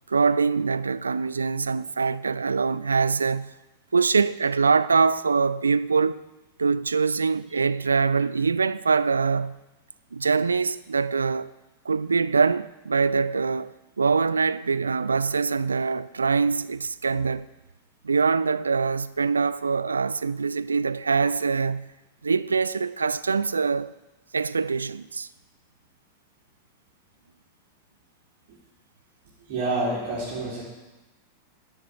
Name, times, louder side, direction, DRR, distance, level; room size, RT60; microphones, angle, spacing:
voice 1, 0.1-3.5 3.9-6.2 6.6-9.6 10.1-11.5 11.9-17.5 18.0-21.9 22.2-23.9 24.3-25.3, right 5 dB, 75° right, 0.3 m, -24 dB
voice 2, 29.5-30.6, right 2 dB, 50° right, 3.0 m, -27 dB
11.0 x 7.3 x 6.6 m
figure-of-eight pair, 90°, 0 cm